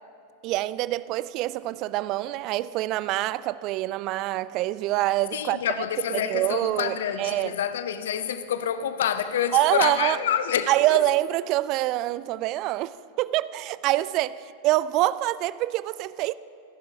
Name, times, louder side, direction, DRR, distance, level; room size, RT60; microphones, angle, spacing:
voice 1, 0.4-5.6 6.1-7.6 9.5-10.2 10.7-16.3, right 16 dB, 45° right, 0.3 m, -25 dB
voice 2, 5.3-10.7, left 9 dB, 65° left, 0.6 m, -27 dB
26.5 x 11.0 x 2.8 m
figure-of-eight pair, 90°, 0 cm